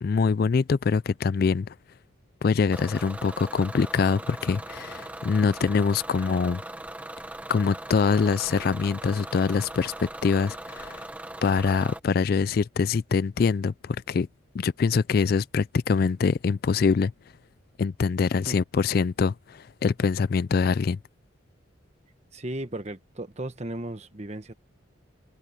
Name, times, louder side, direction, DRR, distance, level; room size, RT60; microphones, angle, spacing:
voice 1, 0.0-1.7 2.4-6.6 7.5-11.1 11.4-14.3 14.5-17.1 17.8-21.0, left 5 dB, 50° left, 0.3 m, -24 dB
Bus / Engine, 2.7-12.0, right 1 dB, 5° right, 1.3 m, -40 dB
voice 2, 22.3-24.5, right 1 dB, 30° right, 1.3 m, -35 dB
head